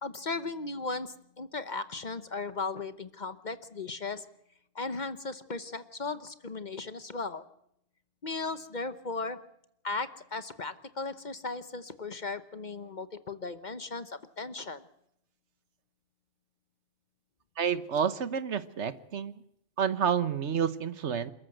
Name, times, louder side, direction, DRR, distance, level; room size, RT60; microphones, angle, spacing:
voice 1, 0.0-4.3 4.7-7.4 8.2-9.4 9.8-14.8, left 3 dB, 40° left, 12 dB, 1.0 m, -36 dB
voice 2, 17.6-19.3 19.8-21.3, right 7 dB, 70° right, 14 dB, 1.3 m, -29 dB
27.5 x 14.0 x 7.8 m, 0.75 s
omnidirectional pair, 1.2 m